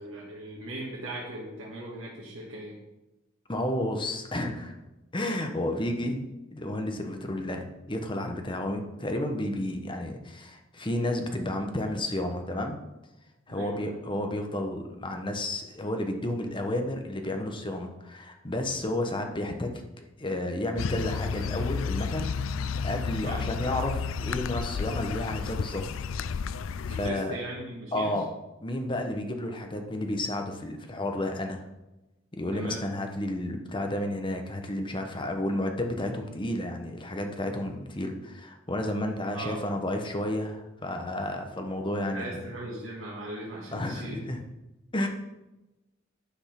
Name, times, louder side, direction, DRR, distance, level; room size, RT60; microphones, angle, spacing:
voice 1, 0.0-2.8 13.5-14.0 23.2-23.4 26.8-28.1 32.5-32.8 39.3-39.6 42.0-44.2, right 1 dB, 75° right, -5 dB, 1.9 m, -39 dB
voice 2, 3.5-4.7 5.1-12.8 13.5-19.7 20.2-22.3 22.8-25.8 26.9-27.4 27.9-28.3 28.6-31.6 32.3-42.4 43.7-44.4 44.9-45.1, left 1 dB, 25° left, 4 dB, 1.2 m, -31 dB
sound 1, 20.8-27.1, left 5 dB, 75° left, 0.4 m, -32 dB
10.5 x 5.4 x 5.9 m, 1.0 s
head